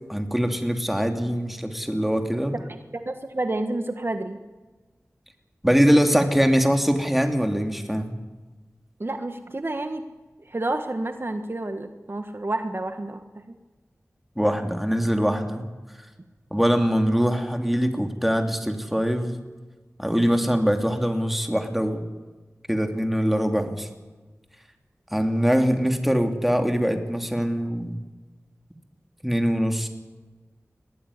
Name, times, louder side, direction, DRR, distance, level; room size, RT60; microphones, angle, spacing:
voice 1, 0.1-2.6 5.6-8.2 14.4-15.7 16.5-19.4 20.0-22.0 22.7-23.9 25.1-28.0 29.2-29.9, equal, 5° right, 5 dB, 2.8 m, -23 dB
voice 2, 2.9-4.4 9.0-10.1 10.5-13.2 13.5-13.6, right 2 dB, 45° right, 7 dB, 1.5 m, -29 dB
21.5 x 15.0 x 9.8 m, 1.2 s
wide cardioid pair, 50°, 5 cm